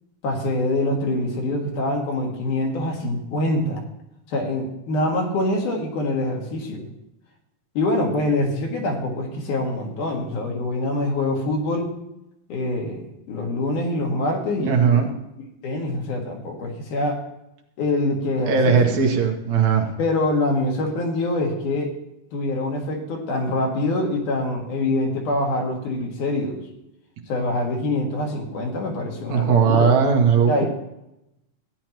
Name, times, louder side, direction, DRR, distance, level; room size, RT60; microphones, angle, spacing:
voice 1, 0.2-3.8 4.3-6.9 7.7-11.9 12.5-15.1 15.6-17.2 17.8-19.0 20.0-21.9 22.3-26.6 27.3-29.9 30.5-30.7, left 2 dB, 75° left, 0 dB, 3.4 m, -25 dB
voice 2, 14.6-15.1 18.5-19.9 29.3-30.7, right 6 dB, 70° right, 3 dB, 2.3 m, -18 dB
14.5 x 10.0 x 3.0 m, 0.86 s
omnidirectional pair, 3.6 m